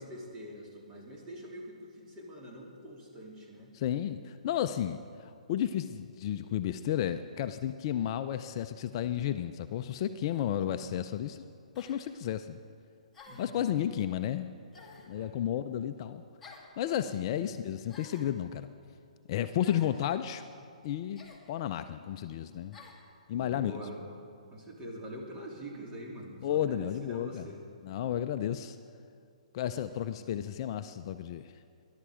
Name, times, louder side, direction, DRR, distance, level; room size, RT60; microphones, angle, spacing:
voice 1, 0.0-3.7 10.7-10.8 13.3-13.9 15.1-15.3 17.2-17.4 20.3-20.4 23.3-24.0 24.5-27.6 29.8-30.1, equal, 20° right, -2 dB, 3.3 m, -45 dB
voice 2, 3.7-11.4 11.8-12.6 13.4-14.5 15.1-16.2 16.8-18.7 19.3-20.4 20.8-22.8 23.3-23.7 26.4-27.5 27.8-28.8 29.5-31.5, left 10 dB, 40° left, 9 dB, 0.6 m, -32 dB
sound 1, 10.3-10.5 11.7-12.0 13.1-13.6 14.7-15.1 16.4-16.7 17.9-18.3 19.6-20.0 21.1-21.4 22.7-23.0, left 4 dB, 10° left, 2.3 m, -52 dB
21.0 x 11.5 x 5.0 m, 2.4 s
hypercardioid pair, 135°, 4 cm